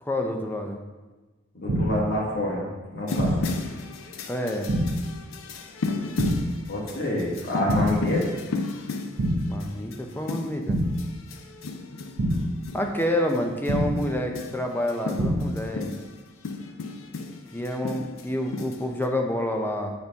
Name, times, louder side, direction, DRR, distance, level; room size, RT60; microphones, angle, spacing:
voice 1, 0.0-0.8 4.3-4.7 9.5-10.8 12.7-15.9 17.5-19.9, left 1 dB, 10° left, 3 dB, 0.6 m, -28 dB
voice 2, 1.5-3.3 6.7-8.2, left 1 dB, 55° left, -3 dB, 1.3 m, -27 dB
sound 1, 1.7-2.2 3.2-3.7 4.7-5.2 6.2-6.7 7.7-8.2 9.2-9.7 10.7-11.2 12.2-12.7 13.7-14.2 15.2-15.7, equal, 65° right, 0.6 m, -26 dB
sound 2, 3.1-19.1, left 3 dB, 85° left, 0.5 m, -35 dB
6.6 x 4.2 x 3.5 m, 1.2 s
head